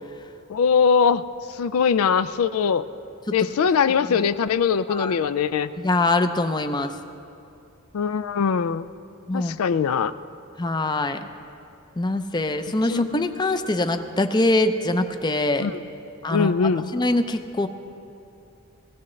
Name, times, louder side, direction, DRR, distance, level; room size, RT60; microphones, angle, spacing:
voice 1, 0.5-1.2 1.6-2.8 3.3-5.7 7.9-8.9 9.3-10.1 12.9-13.3 15.6-15.7 16.3-16.9, left 6 dB, 80° left, 12 dB, 0.4 m, -21 dB
voice 2, 5.8-6.9 9.3-9.6 10.6-11.3 12.0-15.7 16.2-16.5 16.9-17.7, left 2 dB, 20° left, 8 dB, 0.5 m, -23 dB
19.5 x 16.5 x 3.2 m, 2.6 s
head